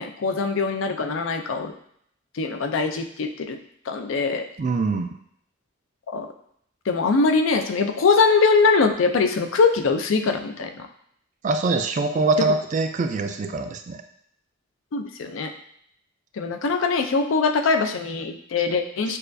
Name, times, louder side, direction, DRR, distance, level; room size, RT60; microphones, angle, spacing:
voice 1, 0.0-1.7 2.3-3.6 3.9-4.5 6.1-6.3 6.9-10.9 14.9-15.5 16.3-19.2, left 4 dB, 80° left, 6 dB, 0.4 m, -22 dB
voice 2, 4.6-5.1 11.4-14.0, right 3 dB, 40° right, 7 dB, 0.3 m, -23 dB
6.5 x 2.4 x 2.6 m, 0.69 s
head